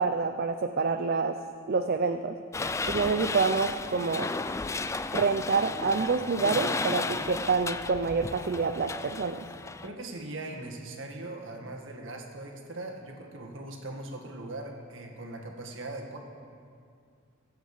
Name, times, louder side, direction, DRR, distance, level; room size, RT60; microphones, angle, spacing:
voice 1, 0.0-1.4 1.7-2.4 2.9-4.3 5.1-9.4, right 4 dB, 50° right, 7 dB, 0.5 m, -27 dB
sound 1, 2.5-9.9, left 3 dB, 15° left, 0.3 m, -33 dB
voice 2, 9.8-16.2, right 2 dB, 65° right, 1 dB, 1.9 m, -40 dB
22.5 x 8.1 x 5.0 m, 2.3 s
head